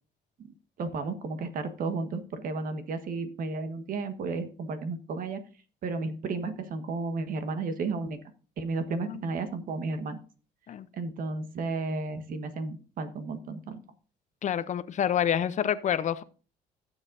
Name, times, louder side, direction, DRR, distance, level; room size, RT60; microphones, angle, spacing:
voice 1, 0.8-5.4 5.8-8.2 8.6-10.2 10.9-13.8, right 3 dB, 55° right, 1.4 m, -33 dB
voice 2, 14.4-16.2, left 9 dB, 45° left, 0.6 m, -27 dB
15.5 x 7.3 x 2.6 m
cardioid pair, 110°, 17 cm